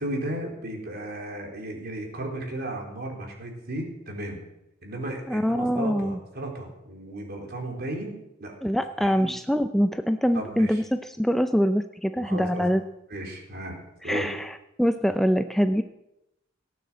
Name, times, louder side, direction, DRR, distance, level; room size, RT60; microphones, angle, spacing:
voice 1, 0.0-4.4 4.8-8.1 8.4-8.5 9.0-9.3 10.3-10.8 12.2-12.7 13.1-14.3, right 1 dB, 55° right, 1 dB, 3.9 m, -35 dB
voice 2, 5.3-6.2 8.6-12.8 14.0-15.8, equal, ahead, 8 dB, 0.5 m, -24 dB
17.5 x 9.3 x 7.4 m, 0.87 s
head